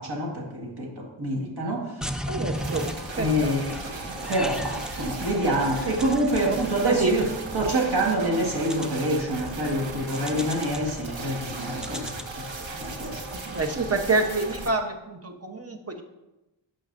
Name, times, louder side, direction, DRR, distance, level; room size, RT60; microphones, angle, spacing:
voice 1, 0.0-2.0 3.2-3.7 4.3-7.3 7.5-12.4 12.8-13.2, right 1 dB, 60° right, -1 dB, 1.8 m, -26 dB
sound 1, 2.0-13.7, equal, ahead, 0.5 m, -38 dB
voice 2, 2.3-2.9 3.2-3.3 6.4-7.1 13.5-16.0, right 3 dB, 30° right, 5 dB, 1.0 m, -26 dB
sound 2, 2.5-14.7, right 2 dB, 85° right, 1.0 m, -37 dB
11.5 x 6.3 x 2.6 m, 0.98 s
wide cardioid pair, 90°, 45 cm